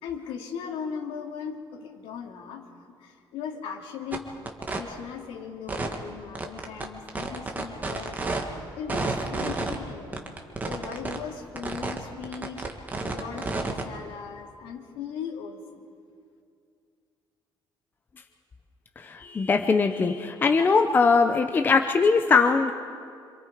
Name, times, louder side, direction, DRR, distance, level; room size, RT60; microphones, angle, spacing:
voice 1, 0.0-8.2 8.8-10.3 10.7-12.7 13.0-15.9, left 7 dB, 85° left, 1 dB, 2.8 m, -38 dB
sound 1, 4.1-4.2 4.5-4.8 5.7-6.0 6.4-8.4 8.9-9.8 10.1-11.2 11.6-12.0 12.2-13.8, right 3 dB, 20° right, 1.7 m, -30 dB
voice 2, 19.0-22.7, left 4 dB, 20° left, 5 dB, 0.7 m, -21 dB
27.0 x 26.5 x 5.0 m, 2.3 s
cardioid pair, 170°, 9 cm